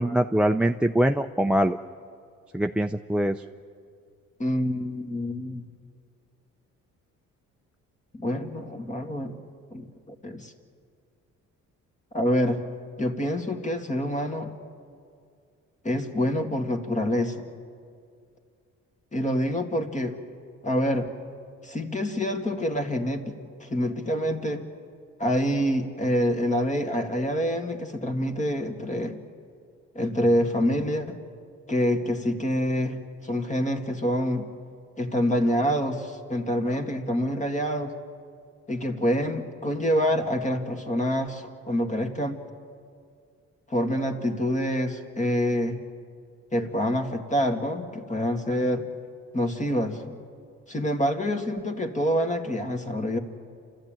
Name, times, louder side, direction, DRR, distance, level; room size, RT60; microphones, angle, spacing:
voice 1, 0.0-1.8 2.5-3.4, right 1 dB, 5° right, 8 dB, 0.5 m, -23 dB
voice 2, 4.4-5.6 8.1-9.4 9.7-9.9 10.2-10.5 12.1-12.6 13.0-14.5 15.8-17.4 19.1-20.2 20.6-21.1 21.6-24.6 25.2-29.2 30.0-31.2 31.7-34.5 35.0-37.9 38.7-42.4 43.7-45.8 46.5-48.9 49.3-50.2 50.7-53.2, equal, 25° left, 5 dB, 2.1 m, -26 dB
29.5 x 13.0 x 9.0 m, 2.3 s
cardioid pair, 90°, 30 cm